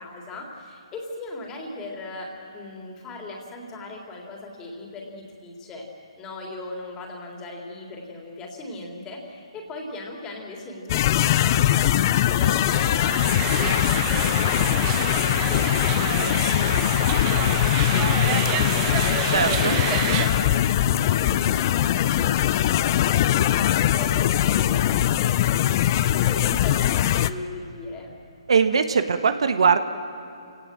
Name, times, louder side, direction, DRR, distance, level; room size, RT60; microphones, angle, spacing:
voice 1, 0.0-5.9 6.2-20.5 20.8-28.1, left 2 dB, 20° left, 0 dB, 3.7 m, -38 dB
sound 1, 10.9-27.3, left 12 dB, 35° left, 0.6 m, -21 dB
sound 2, 12.4-20.3, right 8 dB, 25° right, 1.6 m, -29 dB
voice 2, 19.3-19.7 28.5-29.8, right 6 dB, 70° right, 9 dB, 1.4 m, -20 dB
28.0 x 18.0 x 7.6 m, 2.7 s
hypercardioid pair, 145°, 3 cm